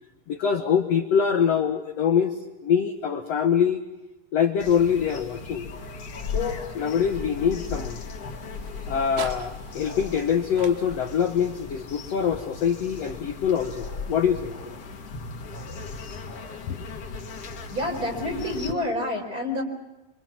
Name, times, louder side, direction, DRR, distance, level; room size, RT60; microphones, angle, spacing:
voice 1, 0.3-3.8 4.3-5.7 6.3-8.0 8.9-14.5 16.7-16.8, left 7 dB, 65° left, 4 dB, 1.7 m, -24 dB
sound 1, 4.6-18.7, left 4 dB, 45° left, 2.4 m, -37 dB
sound 2, 6.3-14.4, right 7 dB, 80° right, 3.7 m, -47 dB
voice 2, 17.4-19.6, left 1 dB, 25° right, 2 dB, 4.6 m, -29 dB
26.5 x 25.5 x 6.1 m, 0.98 s
omnidirectional pair, 4.5 m